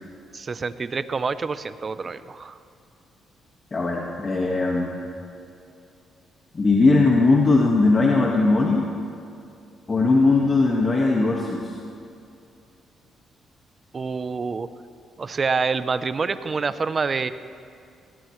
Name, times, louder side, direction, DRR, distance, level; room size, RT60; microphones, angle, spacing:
voice 1, 0.3-2.6 13.9-14.7 15.2-17.3, right 4 dB, 35° right, 13 dB, 0.7 m, -27 dB
voice 2, 3.7-4.9 6.5-8.9 9.9-11.7, left 3 dB, 30° left, -2 dB, 1.7 m, -19 dB
20.0 x 19.0 x 3.2 m, 2.5 s
cardioid pair, 90°, 0 cm